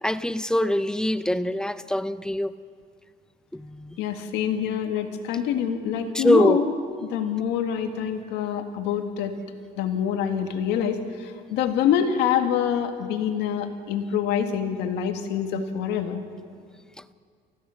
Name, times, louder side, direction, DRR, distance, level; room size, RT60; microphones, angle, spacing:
voice 1, 0.0-2.6 3.5-4.0 6.1-6.6, left 1 dB, 5° left, 0.7 m, -23 dB
voice 2, 4.0-6.7 7.0-9.4 9.8-16.2, left 8 dB, 90° left, 1.9 m, -26 dB
28.5 x 15.5 x 6.4 m
cardioid pair, 110°, 17 cm